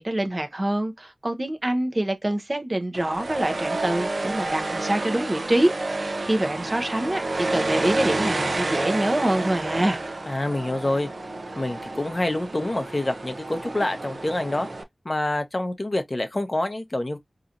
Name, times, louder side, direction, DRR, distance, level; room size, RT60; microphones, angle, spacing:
voice 1, 0.0-10.0, right 1 dB, 30° right, 0.8 m, -25 dB
sound 1, 2.9-14.8, right 2 dB, 65° right, 0.7 m, -30 dB
voice 2, 10.3-11.1 11.6-14.7 15.0-17.2, left 1 dB, 35° left, 0.8 m, -27 dB
4.0 x 2.9 x 2.5 m
wide cardioid pair, 60°, 0 cm